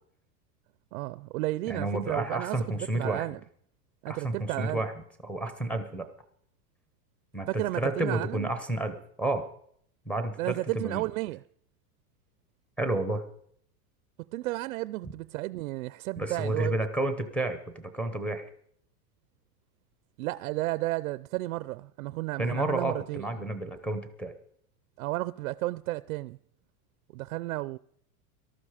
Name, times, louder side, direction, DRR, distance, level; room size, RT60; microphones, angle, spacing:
voice 1, 0.9-3.4 4.0-4.8 7.5-8.5 10.4-11.4 14.3-16.7 20.2-23.2 25.0-26.4 27.1-27.8, right 18 dB, 65° right, 0.5 m, -33 dB
voice 2, 1.7-3.3 4.1-4.9 5.2-6.0 7.3-9.5 10.1-11.1 12.8-13.2 16.2-18.5 22.4-24.3, right 2 dB, 5° left, 0.8 m, -31 dB
18.5 x 13.0 x 4.9 m
supercardioid pair, 165°, 47 cm